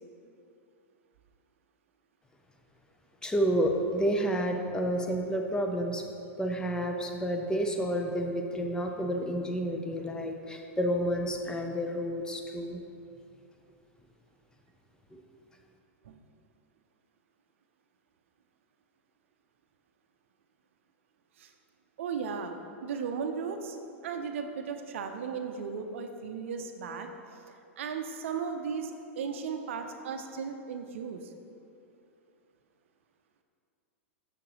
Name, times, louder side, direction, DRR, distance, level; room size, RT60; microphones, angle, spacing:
voice 1, 3.2-6.1 6.4-12.8 15.1-15.2, equal, 10° left, 3 dB, 0.5 m, -30 dB
voice 2, 22.0-22.5 22.8-23.8 24.0-27.1 27.8-31.2, right 6 dB, 65° right, 6 dB, 0.5 m, -36 dB
6.5 x 5.9 x 3.0 m, 2.6 s
hypercardioid pair, 100°, 7 cm